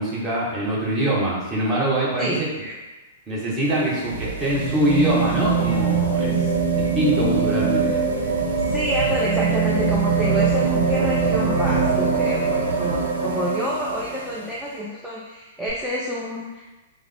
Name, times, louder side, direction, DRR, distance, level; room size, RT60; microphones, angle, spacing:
voice 1, 0.0-2.7 3.3-6.5 6.8-8.0, right 1 dB, 20° right, -6 dB, 1.1 m, -23 dB
sound 1, 3.5-14.5 15.7-15.8, right 5 dB, 75° right, 0.6 m, -23 dB
voice 2, 8.7-16.6, equal, 5° right, -6 dB, 0.4 m, -28 dB
3.4 x 2.2 x 3.3 m, 1.1 s
figure-of-eight pair, 110°, 0 cm